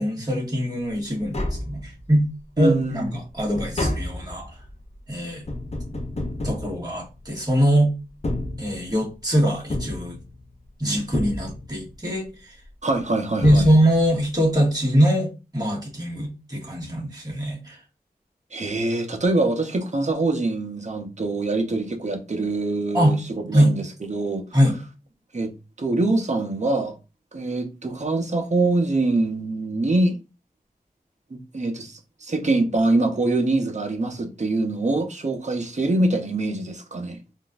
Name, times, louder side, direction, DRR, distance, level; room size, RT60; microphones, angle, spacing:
voice 1, 0.0-2.2 2.6-4.5 5.1-5.4 6.4-7.9 8.6-10.2 10.8-12.6 13.4-17.8 22.9-23.1 23.5-23.7 24.5-24.8, equal, 25° right, 1.6 m, -22 dB
Tap, 0.9-1.0 1.2-2.3 2.7-7.5 8.1-9.1 9.7-10.7 11.1-12.0 13.0-13.1 13.4-14.3 14.5-14.6, left 1 dB, 40° left, 0.7 m, -31 dB
voice 2, 2.6-3.1 12.8-13.7 18.5-24.4 25.3-25.5 25.8-26.9 27.3-30.2 31.3-37.2, right 2 dB, 45° right, 0.8 m, -24 dB
3.7 x 2.5 x 2.4 m
wide cardioid pair, 50°, 16 cm